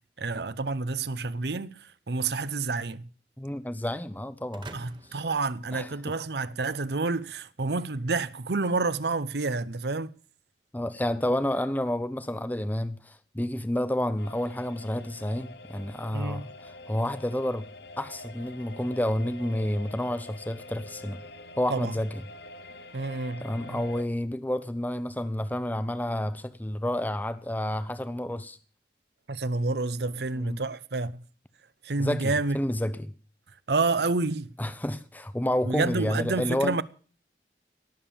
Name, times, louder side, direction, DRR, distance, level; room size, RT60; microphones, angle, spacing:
voice 1, 0.2-3.1 4.7-10.1 16.1-16.4 21.7-21.9 22.9-23.8 29.3-31.2 31.8-32.6 33.7-34.5 35.6-36.8, right 3 dB, 75° right, 0.8 m, -29 dB
voice 2, 3.4-4.7 5.7-5.9 10.7-16.5 16.9-17.7 18.0-21.2 21.6-22.2 23.4-28.6 30.3-30.6 32.0-33.1 34.6-36.8, left 1 dB, 10° left, 0.7 m, -30 dB
sound 1, 4.5-6.5, right 2 dB, 25° right, 1.2 m, -48 dB
sound 2, 14.2-24.0, left 2 dB, 75° left, 1.2 m, -46 dB
18.0 x 7.4 x 8.8 m
head